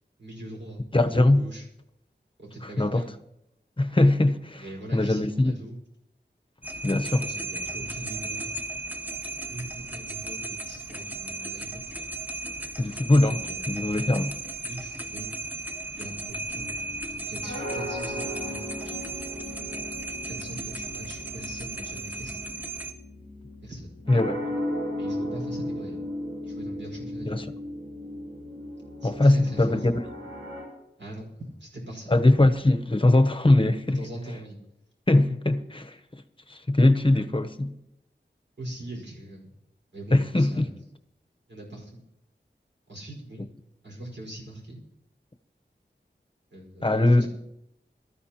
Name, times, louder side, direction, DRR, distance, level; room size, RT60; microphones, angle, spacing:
voice 1, 0.2-1.6 2.4-3.1 4.6-5.8 7.1-8.5 9.4-11.9 13.2-13.6 14.6-15.3 15.9-16.8 17.1-19.0 20.2-22.4 23.6-23.9 25.0-26.0 26.4-27.6 29.0-29.9 31.0-32.1 33.9-34.6 38.6-39.6 39.9-40.7 41.5-42.0 42.9-43.5 43.8-44.8 46.5-47.3, right 1 dB, 70° right, 4.9 m, -41 dB
voice 2, 0.9-1.4 2.8-3.0 3.8-4.6 4.9-5.5 6.8-7.3 12.8-13.4 13.7-14.3 24.1-24.4 27.2-27.5 29.0-30.0 32.1-34.0 35.1-35.9 36.5-37.7 40.1-40.7 46.8-47.3, left 2 dB, 25° left, 0.9 m, -21 dB
sound 1, 6.6-22.9, right 2 dB, 10° right, 1.1 m, -36 dB
sound 2, 16.5-30.6, left 1 dB, 90° right, 7.1 m, -36 dB
23.0 x 13.0 x 2.9 m
wide cardioid pair, 50°, 19 cm